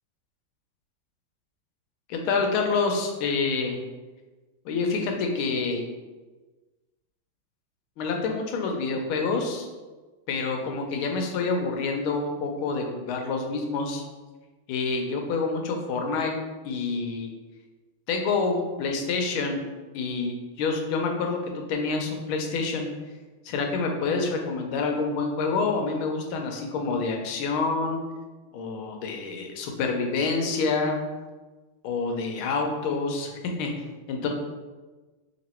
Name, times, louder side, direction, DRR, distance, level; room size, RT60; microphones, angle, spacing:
voice 1, 2.1-3.8 4.6-5.8 8.0-9.7 10.3-14.0 14.7-16.3 16.6-17.3 18.1-19.6 19.9-22.9 23.4-28.0 28.5-31.0 31.8-33.7 34.1-34.3, left 4 dB, 80° left, 3 dB, 1.5 m, -27 dB
3.3 x 3.0 x 4.2 m, 1.3 s
omnidirectional pair, 2.3 m